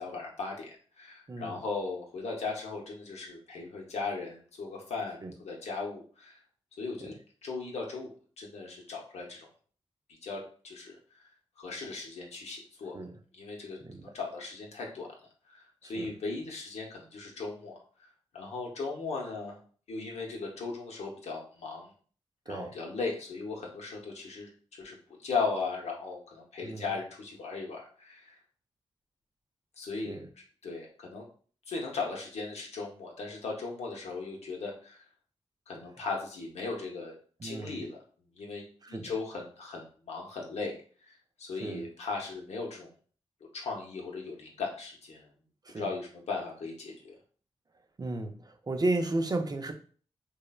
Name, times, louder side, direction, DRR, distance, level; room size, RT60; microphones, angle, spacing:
voice 1, 0.0-6.4 6.8-7.2 7.4-9.5 10.1-11.2 11.6-13.0 13.3-15.6 15.9-19.6 19.9-21.9 22.5-24.9 25.2-28.4 29.8-30.2 30.6-31.3 31.7-35.0 35.7-37.2 37.4-38.0 38.3-42.9 43.5-45.3 45.7-47.2, left 4 dB, 75° left, 0 dB, 0.7 m, -37 dB
voice 2, 1.3-1.6 5.2-5.3 12.9-13.2 13.8-14.1 15.8-16.1 22.5-22.8 26.6-26.9 30.1-30.3 37.4-37.8 38.8-39.1 41.6-41.9 45.7-45.9 48.0-49.7, right 2 dB, 35° right, 6 dB, 0.5 m, -34 dB
3.1 x 2.1 x 2.3 m, 0.43 s
cardioid pair, 45°, 11 cm